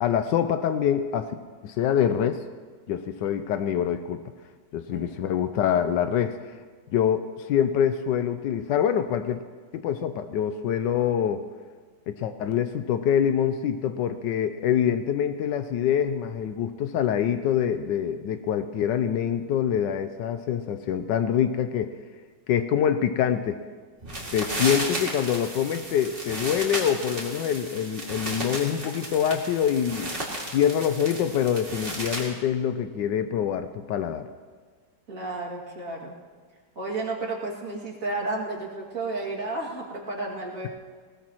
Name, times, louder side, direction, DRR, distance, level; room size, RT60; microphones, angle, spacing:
voice 1, 0.0-1.3 1.6-2.4 2.9-4.2 4.7-6.6 6.9-9.4 9.7-11.4 12.1-21.9 22.5-23.6 24.3-30.1 30.5-34.3, left 9 dB, 85° left, 9 dB, 1.3 m, -25 dB
sound 1, 24.0-32.3, right 1 dB, 30° right, 2.7 m, -34 dB
voice 2, 35.1-36.2 36.8-40.7, right 2 dB, 50° right, -3 dB, 2.8 m, -32 dB
20.0 x 19.5 x 3.0 m, 1.5 s
omnidirectional pair, 1.9 m